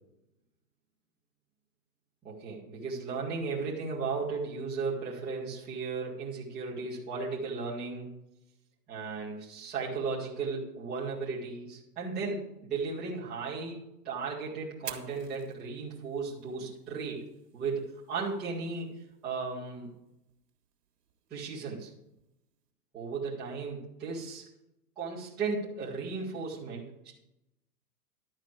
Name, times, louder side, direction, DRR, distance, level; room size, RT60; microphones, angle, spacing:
voice 1, 2.2-8.1 8.9-13.8 14.0-17.2 17.5-18.9 19.2-19.9 21.3-21.9 22.9-24.5 25.0-27.1, right 4 dB, ahead, -13 dB, 0.3 m, -35 dB
Fire, 14.7-22.7, right 10 dB, 90° right, 1.7 m, -52 dB
11.5 x 4.9 x 8.2 m, 0.86 s
hypercardioid pair, 155°, 47 cm